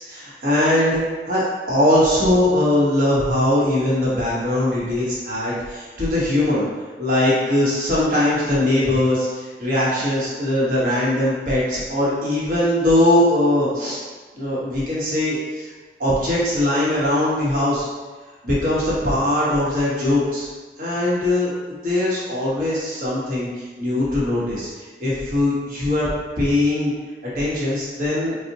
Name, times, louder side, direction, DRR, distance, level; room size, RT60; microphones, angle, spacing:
voice 1, 0.0-6.7 7.0-14.0 14.3-15.7 16.0-17.9 18.4-20.5 20.8-21.5 21.8-26.1 26.4-26.9 27.2-28.4, left 1 dB, 50° right, -7 dB, 1.1 m, -21 dB
4.1 x 2.1 x 2.8 m, 1.3 s
head